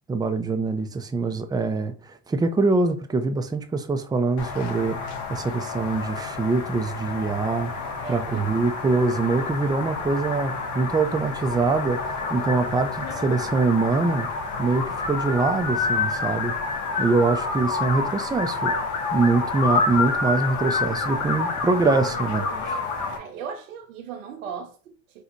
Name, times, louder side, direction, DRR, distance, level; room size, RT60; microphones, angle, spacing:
voice 1, 0.1-5.0 5.3-14.3 14.6-16.5 17.0-18.7 19.1-22.7, right 3 dB, 10° right, 0.5 m, -24 dB
sound 1, 4.4-23.2, left 4 dB, 45° left, 1.2 m, -28 dB
voice 2, 8.0-8.5 23.2-25.2, right 6 dB, 85° right, 0.8 m, -37 dB
4.0 x 2.4 x 4.5 m
hypercardioid pair, 95°, 39 cm